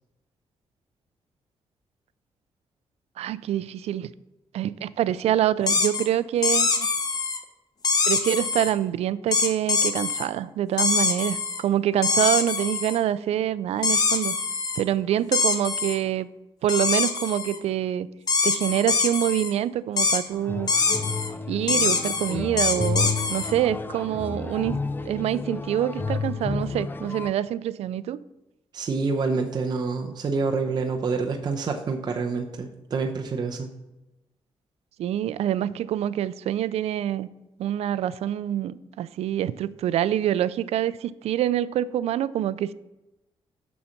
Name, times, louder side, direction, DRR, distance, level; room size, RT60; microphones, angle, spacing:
voice 1, 3.2-4.1 4.5-6.9 8.1-14.3 14.8-16.3 16.6-18.1 18.4-20.7 21.5-28.2 35.0-37.3 37.6-42.7, right 11 dB, 85° right, 17 dB, 0.4 m, -26 dB
sound 1, 5.7-6.0 6.4-7.4 7.8-8.7 9.3-10.3 10.8-11.6 12.0-13.0 13.8-14.8 15.3-16.0 16.7-17.6 18.3-19.5 20.0-20.2 20.7-21.3 21.7-23.5, left 4 dB, 40° left, 1.0 m, -24 dB
sound 2, 20.3-27.3, left 4 dB, 20° left, 0.4 m, -31 dB
voice 2, 28.7-33.7, right 4 dB, 40° right, 2 dB, 0.7 m, -27 dB
7.0 x 6.4 x 5.8 m, 0.98 s
wide cardioid pair, 140°, 10 cm